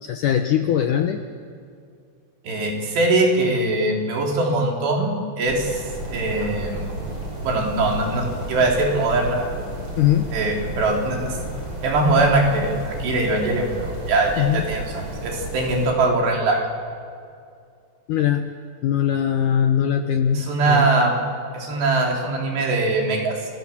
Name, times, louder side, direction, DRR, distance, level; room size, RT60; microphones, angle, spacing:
voice 1, 0.0-1.3 10.0-10.4 14.4-14.7 18.1-18.5 18.8-20.9, left 9 dB, 75° left, 7 dB, 1.9 m, -21 dB
voice 2, 2.4-5.8 6.1-6.9 7.4-9.4 10.3-11.4 11.8-16.7 20.4-21.1 21.5-23.3, right 2 dB, 85° right, 0 dB, 5.8 m, -21 dB
Black Grouse, 5.4-15.9, right 1 dB, 30° right, 6.3 m, -33 dB
29.5 x 22.5 x 7.3 m, 2.4 s
omnidirectional pair, 4.8 m